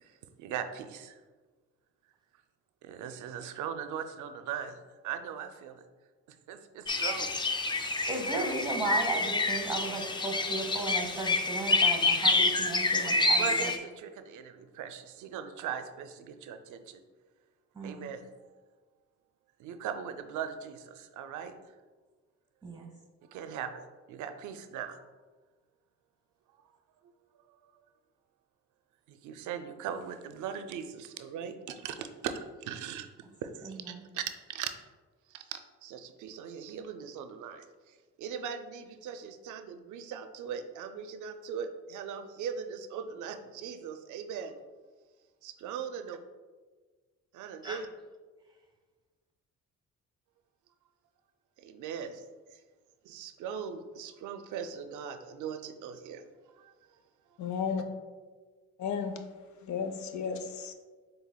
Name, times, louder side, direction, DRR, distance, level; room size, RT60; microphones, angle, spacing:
voice 1, 0.4-1.1 2.8-4.8 5.0-5.8 6.5-7.3 13.4-17.0 17.8-18.2 19.6-21.5 23.3-23.8 24.1-25.0 29.1-32.3 32.7-33.1 33.4-33.8 34.1-34.2 34.5-34.7 35.3-37.7 38.2-44.5 45.4-46.2 47.3-47.9 51.6-52.1 53.1-56.2, right 8 dB, 80° right, 8 dB, 0.5 m, -39 dB
sound 1, 6.9-13.8, left 3 dB, 15° left, 0.4 m, -28 dB
voice 2, 8.1-13.7 17.7-18.2 22.6-22.9 33.6-34.0 47.6-47.8, right 3 dB, 15° right, 3 dB, 1.0 m, -35 dB
voice 3, 57.4-57.8 58.8-59.1 59.6-60.7, left 6 dB, 70° left, 7 dB, 0.6 m, -33 dB
7.2 x 3.3 x 2.2 m, 1.4 s
cardioid pair, 90°, 30 cm